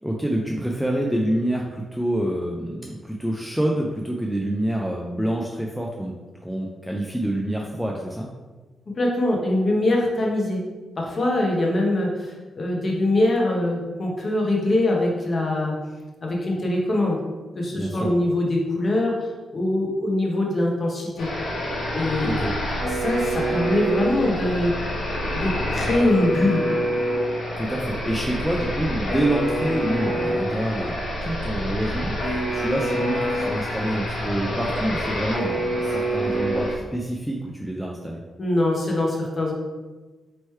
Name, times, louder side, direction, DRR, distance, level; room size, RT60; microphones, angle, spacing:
voice 1, 0.0-6.2 6.4-8.3 17.7-18.1 22.2-22.5 27.6-31.0 31.2-38.2, right 1 dB, ahead, -1 dB, 0.3 m, -27 dB
voice 2, 8.9-10.6 11.0-15.7 16.2-17.2 17.6-19.1 19.5-21.3 21.9-22.3 23.0-24.7 25.3-26.6 38.4-39.5, left 1 dB, 30° left, -1 dB, 0.8 m, -23 dB
sound 1, 21.2-36.7, equal, 90° left, 1.1 m, -26 dB
3.1 x 3.1 x 4.3 m, 1.3 s
wide cardioid pair, 155°, 0 cm